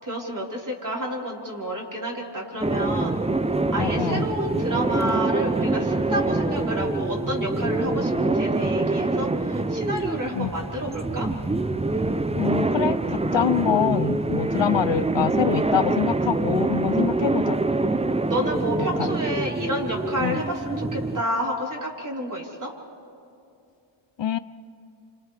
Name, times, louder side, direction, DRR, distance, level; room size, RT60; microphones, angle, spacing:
voice 1, 0.0-3.2 3.7-11.3 18.3-22.7, equal, 40° right, -3 dB, 4.4 m, -30 dB
sound 1, 2.6-21.2, right 2 dB, 15° right, 0.5 m, -25 dB
voice 2, 3.8-4.3 10.4-10.5 12.4-17.6 19.0-19.1 20.2-20.4 24.2-24.4, left 9 dB, 65° left, 14 dB, 0.6 m, -25 dB
30.0 x 27.0 x 3.4 m, 2.6 s
wide cardioid pair, 70°, 48 cm